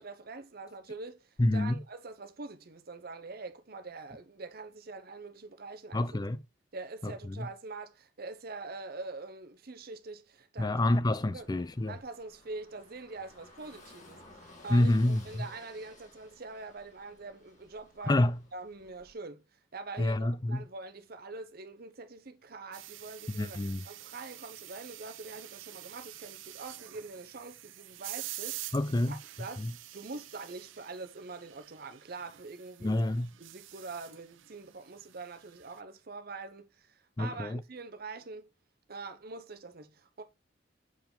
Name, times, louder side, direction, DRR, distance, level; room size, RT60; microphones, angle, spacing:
voice 1, 0.0-6.0 6.7-10.7 11.3-11.5 11.9-19.4 19.7-23.6 23.8-28.7 29.1-33.0 33.4-38.5 38.9-40.2, right 3 dB, 55° right, 0.8 m, -44 dB
voice 2, 1.4-1.8 5.9-6.4 7.0-7.5 10.6-12.0 14.7-15.5 18.1-18.4 20.0-20.7 23.3-23.8 28.7-29.2 29.6-29.7 32.8-33.3 37.2-37.6, left 1 dB, 20° left, 0.4 m, -28 dB
Car passing by / Engine, 11.2-19.1, left 2 dB, 40° left, 2.3 m, -57 dB
sound 1, 22.7-35.8, right 15 dB, 85° right, 0.5 m, -47 dB
7.3 x 4.7 x 3.8 m
head